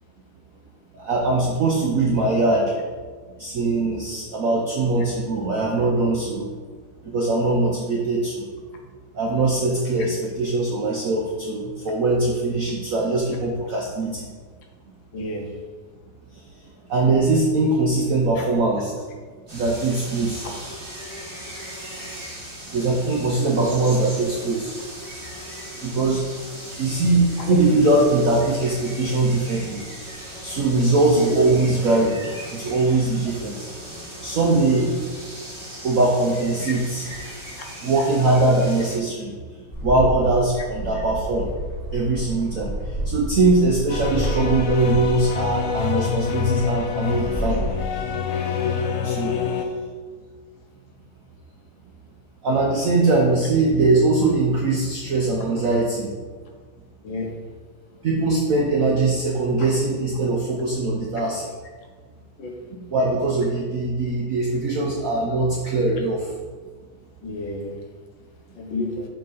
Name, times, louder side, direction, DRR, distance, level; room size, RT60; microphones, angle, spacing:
voice 1, 0.9-2.7 3.4-6.5 7.0-8.4 9.1-14.3 16.9-18.9 19.5-20.5 22.7-24.8 25.8-26.3 26.8-29.8 30.4-32.2 32.5-33.6 34.0-35.0 35.8-37.1 37.8-39.3 39.8-41.5 41.9-47.6 49.0-49.3 52.4-56.1 58.0-61.5 62.7-66.3, right 2 dB, 70° right, -2 dB, 0.8 m, -21 dB
voice 2, 15.1-15.4 23.7-23.8 27.5-27.6 37.6-37.7 57.0-57.3 62.4-62.5 67.2-67.7 68.6-69.1, left 2 dB, 70° left, 1 dB, 1.7 m, -30 dB
sound 1, 19.5-39.0, equal, 25° right, 1.2 m, -38 dB
Bird, 39.7-47.7, equal, 25° left, 2.2 m, -30 dB
sound 2, 43.9-49.7, left 6 dB, 90° left, 1.5 m, -26 dB
7.9 x 3.7 x 4.1 m, 1.5 s
omnidirectional pair, 2.3 m